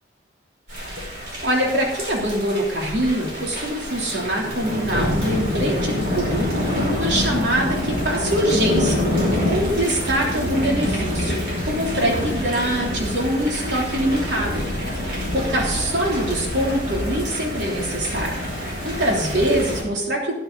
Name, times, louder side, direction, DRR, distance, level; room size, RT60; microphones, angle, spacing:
Thunder / Rain, 0.7-19.8, left 1 dB, 60° right, 5.1 m, -26 dB
voice 1, 1.4-11.3 11.7-14.6 15.0-18.3 18.8-20.4, right 1 dB, 75° right, -1 dB, 3.3 m, -24 dB
13.0 x 10.0 x 4.1 m, 0.94 s
head